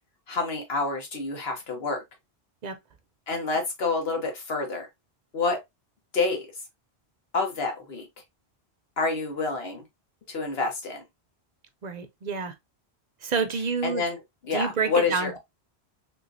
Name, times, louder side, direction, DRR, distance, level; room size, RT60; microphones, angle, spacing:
voice 1, 0.3-2.0 3.3-4.9 5.3-5.6 6.1-6.5 7.3-8.1 9.0-9.8 10.3-11.0 13.8-14.2 14.4-15.4, left 4 dB, 65° left, 1.4 m, -28 dB
voice 2, 11.8-12.5 13.2-14.1 14.5-15.4, right 5 dB, 50° right, 0.6 m, -28 dB
3.5 x 3.0 x 2.5 m
omnidirectional pair, 1.1 m